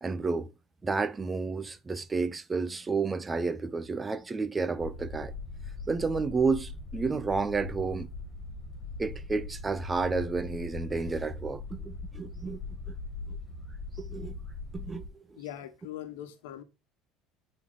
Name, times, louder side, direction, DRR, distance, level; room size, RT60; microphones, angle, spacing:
voice 1, 0.0-0.5 0.8-5.3 5.9-8.1 9.0-12.6 14.0-14.4 14.7-15.4, right 4 dB, 20° right, 0.6 m, -31 dB
sound 1, 4.8-15.1, left 3 dB, 20° left, 3.5 m, -41 dB
voice 2, 15.3-16.6, left 11 dB, 90° left, 1.2 m, -41 dB
8.9 x 4.4 x 4.0 m
supercardioid pair, 105°, 0 cm